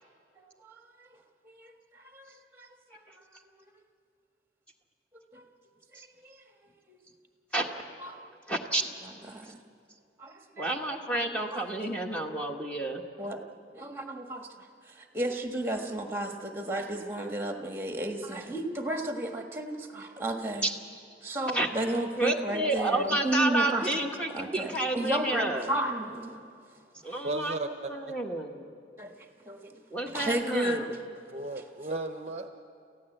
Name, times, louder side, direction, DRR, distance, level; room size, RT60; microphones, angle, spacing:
voice 1, 0.4-1.1 1.4-3.2 5.3-5.4 6.2-6.4 6.9-7.0 8.0-8.2 9.3-9.6 10.2-10.9 11.5-11.6 13.2-13.4 13.7-20.7 21.2-23.9 24.3-26.4 27.0-27.2 29.0-29.1 29.4-29.8 30.1-31.2, right 1 dB, 15° right, 4 dB, 1.5 m, -33 dB
voice 2, 8.5-8.8 10.6-13.0 20.6-20.7 21.5-21.7 22.2-25.7 27.0-28.7 29.9-30.9, right 2 dB, 5° left, 1 dB, 1.3 m, -30 dB
voice 3, 27.2-27.9 31.3-32.5, right 2 dB, 40° right, 7 dB, 0.7 m, -35 dB
28.5 x 15.0 x 7.9 m, 2.5 s
head